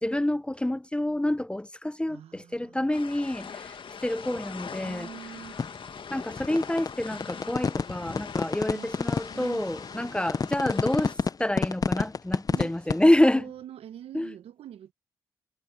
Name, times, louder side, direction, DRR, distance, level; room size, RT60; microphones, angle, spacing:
voice 1, 0.0-5.1 6.1-13.5 14.1-14.3, left 1 dB, 10° left, 0.8 m, -27 dB
voice 2, 2.1-2.9 4.8-5.6 8.7-8.9 9.3-10.2 12.5-13.0 13.3-14.9, right 10 dB, 75° right, 1.3 m, -45 dB
sound 1, 2.9-11.1, left 6 dB, 55° left, 2.1 m, -42 dB
sound 2, 5.6-13.0, left 5 dB, 35° left, 0.6 m, -28 dB
hypercardioid pair, 40°, 10 cm